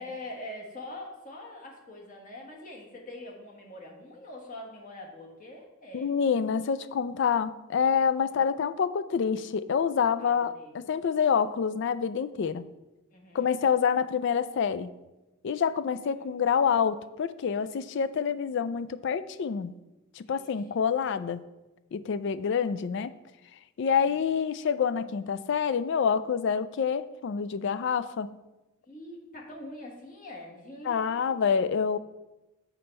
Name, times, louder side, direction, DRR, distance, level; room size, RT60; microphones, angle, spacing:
voice 1, 0.0-6.1 8.3-8.5 10.2-10.8 13.1-13.5 16.1-16.3 20.3-20.4 24.0-24.2 28.8-31.4, left 1 dB, 40° left, -1 dB, 1.4 m, -44 dB
voice 2, 5.9-12.6 13.3-14.9 15.4-19.7 20.2-21.4 21.9-23.1 23.8-28.3 30.9-32.0, left 6 dB, 55° left, 14 dB, 0.3 m, -27 dB
7.0 x 4.4 x 5.3 m, 1.0 s
head